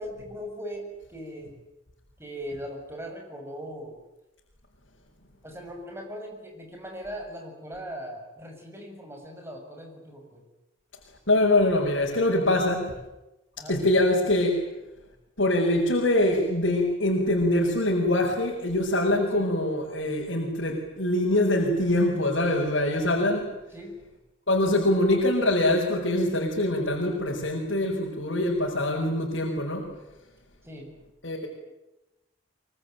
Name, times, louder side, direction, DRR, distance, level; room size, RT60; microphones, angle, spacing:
voice 1, 0.0-1.5 2.2-4.0 5.4-10.4 13.6-13.8 19.3-19.5 23.7-23.9 30.6-30.9, equal, 15° right, 2 dB, 7.5 m, -39 dB
voice 2, 11.3-12.9 13.7-14.6 15.4-23.5 24.5-29.9 31.2-31.5, left 1 dB, 75° left, -2 dB, 5.6 m, -24 dB
24.5 x 24.0 x 9.3 m, 0.96 s
head